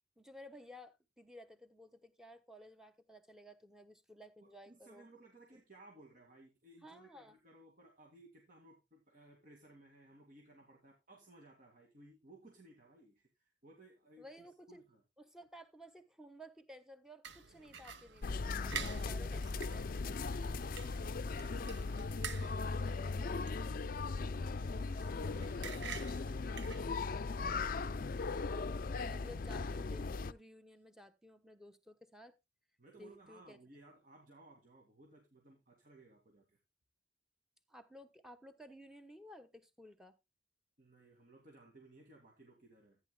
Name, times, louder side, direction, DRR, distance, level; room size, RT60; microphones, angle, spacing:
voice 1, 0.2-5.1 6.8-7.4 14.2-14.8 15.2-19.9 28.4-32.3 33.0-33.6 37.7-40.1, equal, 5° right, 1.1 m, -56 dB
voice 2, 4.4-15.0 22.6-27.0 32.8-36.6 40.8-43.0, right 2 dB, 50° right, 2.2 m, -61 dB
sound 1, 17.2-27.3, right 6 dB, 70° right, 1.0 m, -49 dB
sound 2, 18.2-30.3, left 4 dB, 50° left, 0.5 m, -38 dB
14.5 x 9.7 x 2.2 m
head